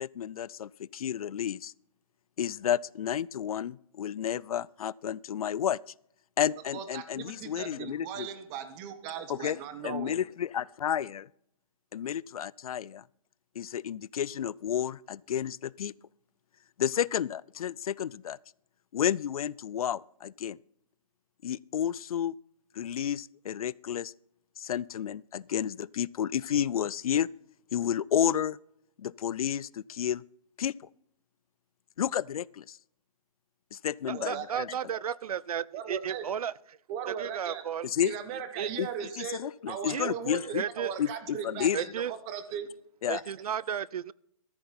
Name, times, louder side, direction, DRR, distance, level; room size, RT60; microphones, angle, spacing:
voice 1, 0.0-1.7 2.4-5.9 6.4-8.3 9.3-9.6 9.8-11.3 11.9-13.0 13.6-15.9 16.8-18.4 18.9-20.6 21.4-22.4 22.7-24.1 24.6-27.3 27.7-28.6 29.0-30.2 30.6-30.7 32.0-32.8 33.7-34.7 37.8-38.1 38.8-40.6 41.0-41.9 43.0-43.2, left 9 dB, 75° left, 0.4 m, -31 dB
voice 2, 6.7-10.2 34.1-34.5 34.9-35.0 35.7-36.3 36.9-37.6 38.0-39.4 39.7-40.4 40.8-42.7, right 8 dB, 20° right, 1.1 m, -38 dB
voice 3, 34.1-36.5 37.1-37.9 38.6-38.7 39.9-40.1 40.4-41.0 41.7-42.1 43.1-44.1, right 8 dB, 80° right, 0.5 m, -34 dB
13.5 x 9.6 x 4.2 m
hypercardioid pair, 155°, 19 cm